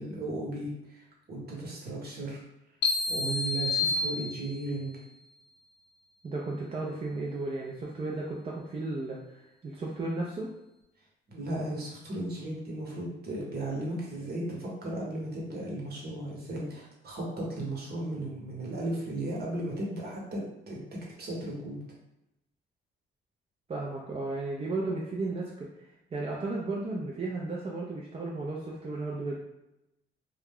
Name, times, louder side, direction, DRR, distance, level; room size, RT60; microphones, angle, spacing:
voice 1, 0.0-2.4 3.1-4.9 11.3-20.8 21.2-21.8, right 1 dB, 50° right, -3 dB, 1.0 m, -35 dB
sound 1, 2.8-4.8, left 3 dB, 65° left, 0.5 m, -29 dB
voice 2, 6.2-10.5 23.7-25.7 26.1-29.3, right 2 dB, 30° right, -3 dB, 0.5 m, -34 dB
2.3 x 2.2 x 3.4 m, 0.91 s
cardioid pair, 90°, 20 cm